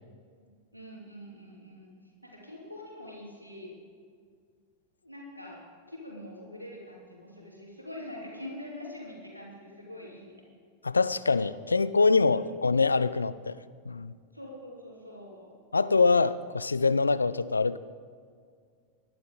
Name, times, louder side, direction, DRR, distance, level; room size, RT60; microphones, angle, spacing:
voice 1, 0.4-3.7 5.0-10.4 12.3-12.4 14.3-15.6, left 1 dB, 90° right, -2 dB, 2.9 m, -44 dB
voice 2, 10.8-13.6 13.9-14.1 15.7-17.8, left 4 dB, 80° left, 16 dB, 0.4 m, -24 dB
19.0 x 11.5 x 3.8 m, 2.1 s
figure-of-eight pair, 90°, 0 cm